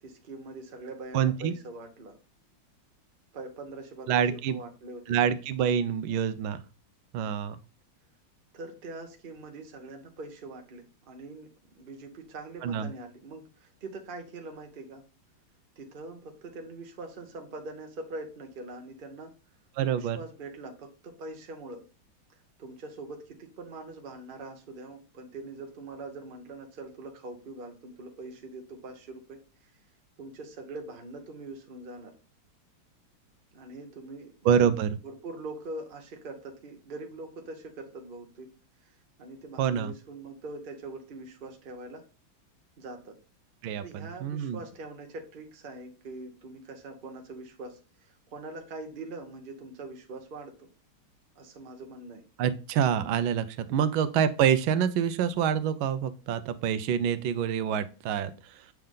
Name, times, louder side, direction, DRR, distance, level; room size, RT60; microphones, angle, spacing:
voice 1, 0.0-2.2 3.3-5.2 8.5-15.0 15.8-19.3 20.0-21.9 22.6-29.4 30.2-32.1 33.5-34.7 35.0-38.5 38.8-38.9 39.2-42.0 42.8-43.2 43.8-50.7 51.4-52.2 53.7-53.8, right 2 dB, 40° right, 4 dB, 0.8 m, -43 dB
voice 2, 1.1-1.5 4.1-4.6 5.1-6.6 7.1-7.6 12.6-12.9 19.8-20.2 34.4-34.9 39.6-39.9 43.6-44.6 52.4-58.6, right 8 dB, 85° right, 13 dB, 1.4 m, -26 dB
7.5 x 3.4 x 3.7 m, 0.34 s
omnidirectional pair, 2.2 m